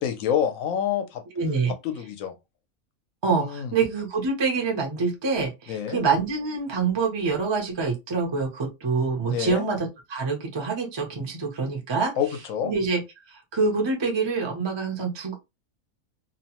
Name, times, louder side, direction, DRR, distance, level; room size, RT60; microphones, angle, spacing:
voice 1, 0.0-1.2 1.8-2.3 3.3-3.8 5.7-6.0 9.3-9.7 12.2-12.7, left 8 dB, 70° left, 1.0 m, -27 dB
voice 2, 1.4-1.7 3.2-12.1 12.6-13.0 13.3-15.3, right 4 dB, 25° right, 0.6 m, -26 dB
2.9 x 2.1 x 2.9 m
omnidirectional pair, 1.5 m